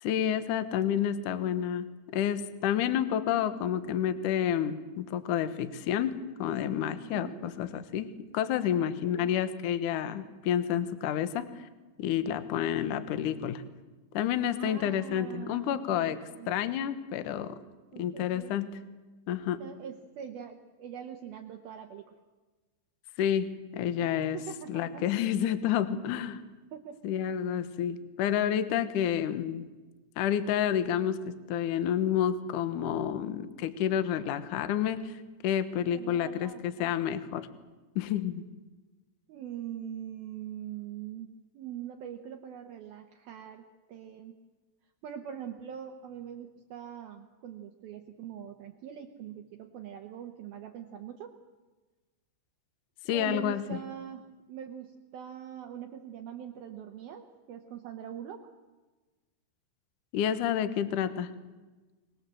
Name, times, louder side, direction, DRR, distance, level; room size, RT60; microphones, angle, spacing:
voice 1, 0.0-1.9 2.1-6.1 6.4-11.7 12.0-13.6 14.1-16.2 16.5-17.5 18.0-18.7 19.3-19.6 23.2-24.4 24.7-26.4 27.0-29.7 30.2-35.1 35.4-37.5 38.0-38.4 53.1-53.8 60.1-61.3, left 9 dB, 75° left, 11 dB, 1.9 m, -29 dB
voice 2, 7.1-7.5 8.7-9.4 14.4-16.5 17.9-18.6 19.6-22.2 24.3-25.1 26.7-27.0 35.8-36.9 39.3-44.4 45.0-51.4 53.0-58.5, right 9 dB, 70° right, 3 dB, 2.5 m, -43 dB
25.5 x 20.0 x 7.7 m, 1.2 s
omnidirectional pair, 5.4 m